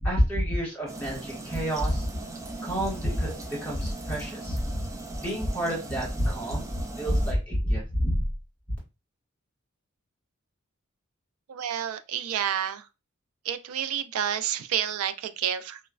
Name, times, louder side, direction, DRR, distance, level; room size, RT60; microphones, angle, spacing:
voice 1, 0.0-2.1 2.6-3.3 3.6-4.9 5.2-8.2, equal, 10° left, 1.6 m, -28 dB
sound 1, 0.9-7.3, right 2 dB, 15° right, 0.4 m, -40 dB
voice 2, 11.5-12.9 13.4-15.8, right 10 dB, 90° right, 0.3 m, -29 dB
3.1 x 2.1 x 2.4 m
head